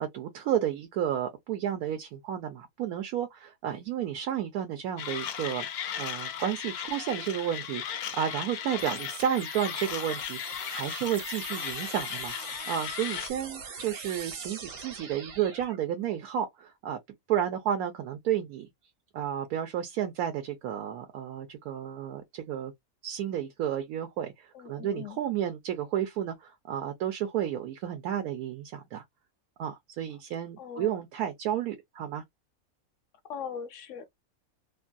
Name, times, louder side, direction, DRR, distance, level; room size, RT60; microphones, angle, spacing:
voice 1, 0.0-5.7 6.0-12.3 12.7-17.0 17.3-18.7 19.1-22.7 23.0-29.0 29.6-32.2, right 10 dB, 80° right, 1.1 m, -32 dB
Mechanisms, 5.0-13.3, left 9 dB, 85° left, 1.1 m, -36 dB
sound 1, 8.8-15.8, right 5 dB, 65° right, 1.2 m, -43 dB
voice 2, 24.5-25.2 30.6-30.9 33.3-34.1, left 7 dB, 70° left, 0.8 m, -40 dB
3.0 x 2.2 x 2.5 m
omnidirectional pair, 1.5 m